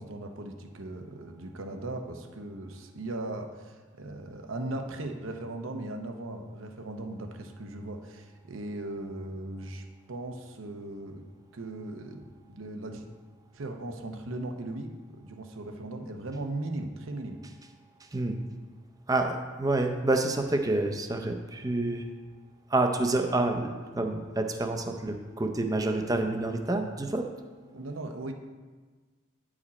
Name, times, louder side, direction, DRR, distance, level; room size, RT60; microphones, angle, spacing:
voice 1, 0.0-11.2 11.5-13.0 13.5-17.4 27.7-28.3, right 2 dB, 85° right, 4 dB, 0.8 m, -38 dB
voice 2, 18.0-18.4 19.1-22.0 22.7-27.3, right 2 dB, 20° right, 5 dB, 0.5 m, -28 dB
9.5 x 5.0 x 4.2 m, 1.4 s
head